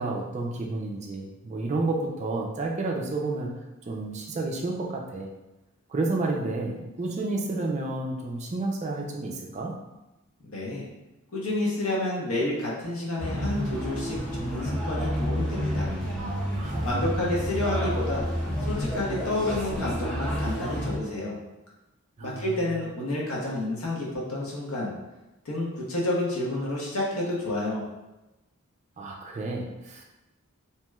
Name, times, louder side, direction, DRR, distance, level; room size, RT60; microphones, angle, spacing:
voice 1, 0.0-3.5 3.9-5.3 5.9-9.8 16.6-16.9 22.2-22.5 29.0-30.0, right 2 dB, 30° right, 0 dB, 0.4 m, -30 dB
voice 2, 10.4-10.8 11.3-15.9 16.8-18.3 18.6-21.4 22.2-24.9 25.4-27.8, left 1 dB, 80° left, -4 dB, 0.9 m, -29 dB
sound 1, 13.2-21.0, equal, ahead, 0.8 m, -30 dB
3.1 x 2.9 x 2.3 m, 1.0 s
head